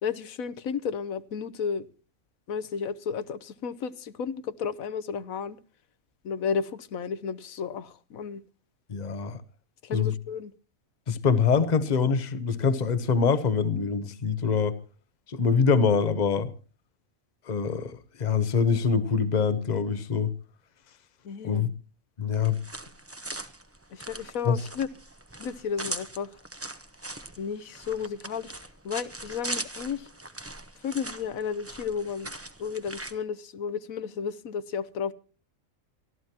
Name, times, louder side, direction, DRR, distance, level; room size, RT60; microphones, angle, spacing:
voice 1, 0.0-1.9 2.5-5.6 6.2-8.4 9.8-10.5 21.2-21.7 23.9-24.9 25.4-26.3 27.4-28.5 28.8-30.1 30.8-32.3 32.6-35.1, left 6 dB, 85° left, 1.3 m, -33 dB
voice 2, 8.9-9.4 9.9-10.1 11.1-14.7 15.3-16.5 17.5-20.3 21.4-21.7 22.2-22.6 24.4-24.6, left 5 dB, 35° left, 1.1 m, -24 dB
sound 1, 22.3-33.2, right 2 dB, 10° right, 0.9 m, -40 dB
23.5 x 14.5 x 2.9 m
omnidirectional pair, 1.4 m